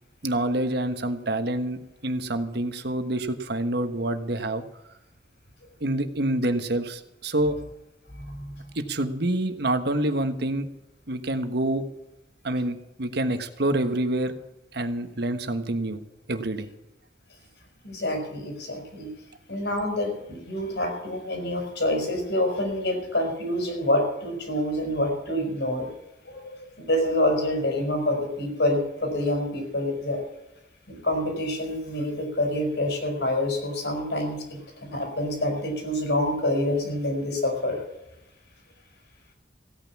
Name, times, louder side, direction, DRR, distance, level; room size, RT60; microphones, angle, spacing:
voice 1, 0.2-4.6 5.8-7.5 8.7-10.7 11.1-11.8 12.4-14.3 14.7-16.0 16.3-16.7, right 1 dB, 65° right, 9 dB, 1.3 m, -27 dB
voice 2, 8.2-8.5 17.8-19.1 19.5-25.9 26.2-30.2 30.9-37.8, left 1 dB, 70° left, 3 dB, 4.9 m, -27 dB
16.5 x 9.4 x 7.2 m, 0.90 s
head